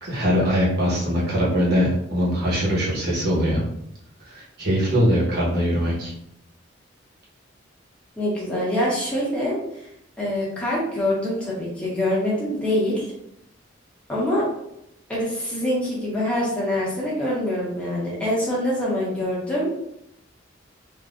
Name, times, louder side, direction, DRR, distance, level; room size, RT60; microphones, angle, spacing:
voice 1, 0.0-3.6 4.3-6.1, equal, 60° right, -5 dB, 1.2 m, -22 dB
voice 2, 8.2-9.9 10.2-13.1 14.1-14.4 15.1-19.7, left 1 dB, 5° left, -7 dB, 1.2 m, -25 dB
3.7 x 2.5 x 2.5 m, 0.78 s
head